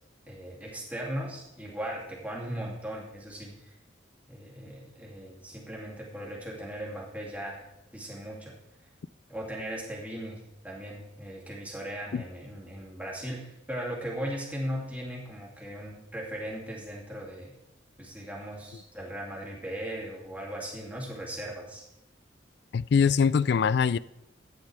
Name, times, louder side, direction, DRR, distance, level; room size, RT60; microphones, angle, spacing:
voice 1, 0.3-3.7 4.3-7.6 7.9-8.5 9.3-10.4 10.6-13.4 13.7-17.5 18.0-21.8, equal, 10° right, -3 dB, 2.6 m, -38 dB
voice 2, 22.7-24.0, left 6 dB, 55° left, 19 dB, 0.3 m, -23 dB
14.0 x 10.5 x 3.4 m, 0.87 s
head